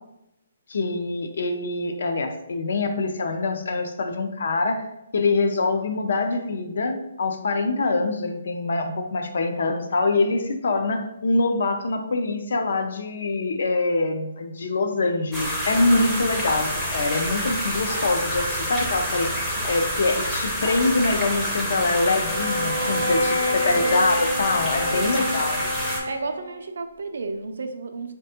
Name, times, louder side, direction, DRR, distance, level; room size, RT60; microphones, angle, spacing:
voice 1, 0.7-4.8 5.1-19.3 19.7-25.6, left 3 dB, 65° left, 6 dB, 0.4 m, -24 dB
sound 1, 15.3-26.0, equal, 5° left, 0.5 m, -28 dB
Bowed string instrument, 22.2-26.6, left 1 dB, 80° left, 0.8 m, -28 dB
voice 2, 23.0-24.1 24.9-25.2 26.1-28.1, right 3 dB, 75° right, 7 dB, 0.3 m, -33 dB
3.4 x 2.2 x 2.8 m, 0.87 s
hypercardioid pair, 165°, 0 cm